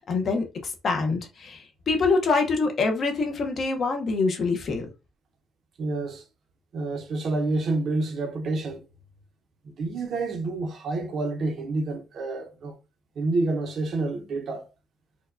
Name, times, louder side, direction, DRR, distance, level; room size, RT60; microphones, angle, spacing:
voice 1, 0.0-4.9, left 4 dB, 40° left, 0.7 m, -25 dB
voice 2, 5.8-6.2 6.7-8.9 9.6-12.8 13.2-14.7, right 2 dB, 45° right, 0.6 m, -28 dB
4.4 x 2.2 x 2.5 m
cardioid pair, 170°, 0 cm